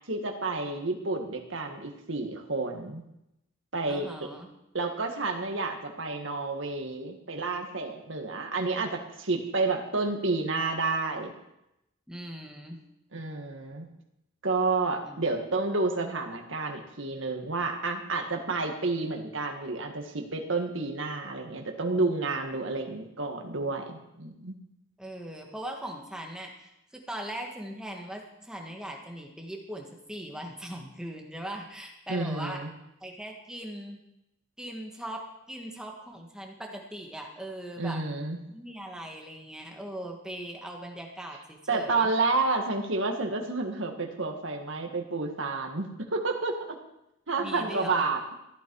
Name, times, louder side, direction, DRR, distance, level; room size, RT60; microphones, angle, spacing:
voice 1, 0.1-3.0 3.7-4.1 4.7-11.3 13.1-13.9 14.4-24.5 32.1-32.7 37.8-38.4 41.7-46.8 47.3-48.2, right 3 dB, 65° right, 3 dB, 1.8 m, -30 dB
voice 2, 3.9-4.5 12.1-12.8 15.0-15.2 25.0-32.6 33.0-34.0 34.6-38.0 38.5-42.1 47.4-48.0, right 1 dB, 5° right, 1 dB, 1.6 m, -40 dB
15.0 x 11.0 x 4.7 m, 0.85 s
head